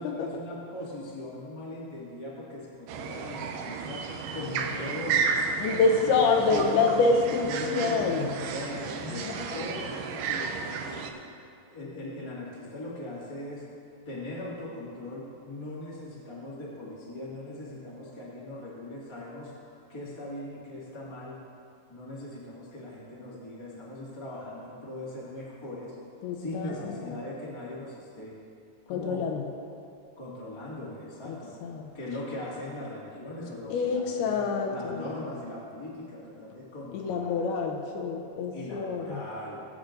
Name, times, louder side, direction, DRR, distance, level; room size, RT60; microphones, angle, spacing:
voice 1, 0.0-5.3 5.8-8.2 8.4-11.1 11.7-13.6 14.0-19.5 19.9-21.4 21.9-25.9 26.3-28.4 28.9-29.2 30.2-31.6 31.9-37.4 38.5-39.6, left 1 dB, 25° left, -7 dB, 0.5 m, -39 dB
sound 1, 2.9-11.1, right 6 dB, 85° right, 1.8 m, -33 dB
voice 2, 5.6-8.3 9.1-9.3 26.2-27.2 28.9-29.4 31.3-31.4 31.6-31.9 33.7-35.0 36.9-39.2, left 4 dB, 85° left, 3 dB, 2.6 m, -27 dB
18.0 x 8.4 x 2.6 m, 2.5 s
omnidirectional pair, 4.4 m